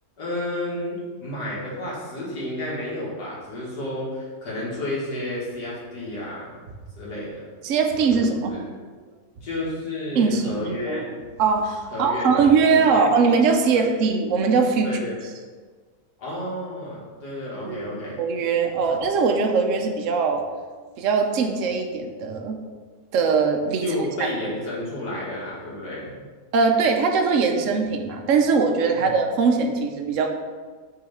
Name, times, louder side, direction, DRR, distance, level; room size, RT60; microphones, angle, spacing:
voice 1, 0.2-6.5 6.9-7.5 8.1-8.7 9.4-11.1 11.9-13.3 13.7-13.9 14.8-15.3 16.2-18.2 18.9-19.0 23.8-26.1 28.9-29.1, left 1 dB, 80° left, -6 dB, 2.6 m, -31 dB
voice 2, 7.6-8.5 10.1-14.9 17.6-17.8 18.2-20.4 21.0-22.6 23.1-23.9 26.5-30.3, right 5 dB, 60° right, 3 dB, 1.0 m, -21 dB
6.4 x 3.9 x 5.8 m, 1.5 s
omnidirectional pair, 1.7 m